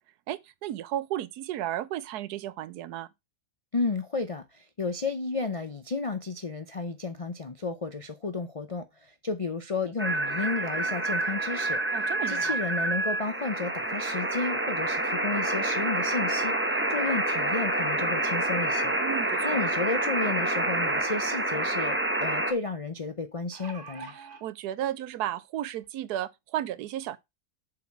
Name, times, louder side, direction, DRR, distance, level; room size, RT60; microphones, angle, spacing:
voice 1, 0.3-3.1 11.9-12.6 19.0-19.6 24.1-27.2, right 12 dB, 85° right, 1.2 m, -34 dB
voice 2, 3.7-19.0 19.4-24.1, left 3 dB, 60° left, 0.3 m, -32 dB
sound 1, 10.0-22.5, right 1 dB, 10° right, 0.9 m, -28 dB
sound 2, 23.2-24.4 25.3-25.4 25.8-25.9, right 4 dB, 70° right, 2.1 m, -44 dB
7.1 x 4.8 x 5.9 m
omnidirectional pair, 1.6 m